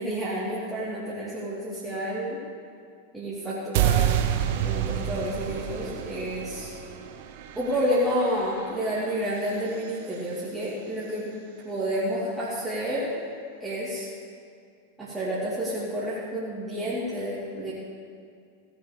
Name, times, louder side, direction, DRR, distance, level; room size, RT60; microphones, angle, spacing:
voice 1, 0.0-2.4 3.1-4.2 4.6-6.7 7.6-11.3 11.6-13.1 13.6-14.1 15.0-17.7, equal, 10° right, -9 dB, 2.9 m, -29 dB
sound 1, 3.7-9.9, right 11 dB, 50° right, 0.8 m, -29 dB
17.5 x 6.8 x 6.8 m, 2.3 s
figure-of-eight pair, 90°, 0 cm